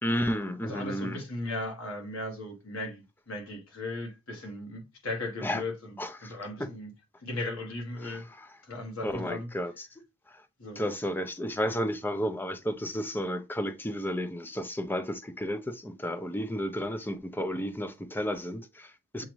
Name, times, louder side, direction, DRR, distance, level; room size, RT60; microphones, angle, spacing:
voice 1, 0.0-1.2 5.4-5.6 6.0-6.3 6.6-6.7 8.0-8.6 9.0-10.0 10.3-10.5 10.8-19.2, equal, 10° left, 0.4 m, -32 dB
voice 2, 0.6-5.7 6.3-6.9 7.2-8.2 8.6-9.5 10.6-10.9 19.2-19.3, left 2 dB, 80° left, 1.6 m, -37 dB
7.1 x 2.5 x 3.0 m
head